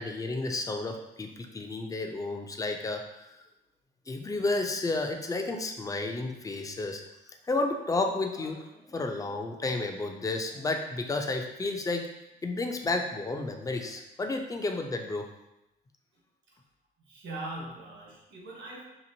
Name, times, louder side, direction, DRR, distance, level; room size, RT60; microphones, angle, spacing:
voice 1, 0.0-3.0 4.1-7.0 7.5-12.1 12.4-15.3, left 2 dB, 15° left, 4 dB, 0.3 m, -31 dB
voice 2, 17.1-18.8, right 2 dB, 70° right, -4 dB, 1.2 m, -40 dB
2.9 x 2.5 x 2.7 m, 0.92 s
cardioid pair, 90°, 20 cm